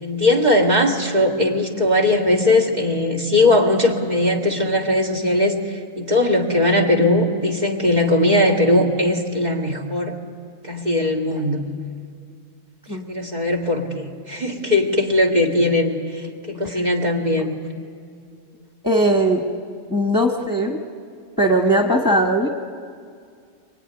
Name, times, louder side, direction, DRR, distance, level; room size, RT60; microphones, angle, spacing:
voice 1, 0.0-10.2 10.6-11.6 13.0-16.0 16.5-17.5, left 1 dB, 35° right, 0 dB, 2.3 m, -19 dB
voice 2, 18.8-19.4 19.9-20.8 21.4-22.5, right 1 dB, 15° left, 1 dB, 1.4 m, -19 dB
24.0 x 23.5 x 9.9 m, 2.2 s
omnidirectional pair, 1.3 m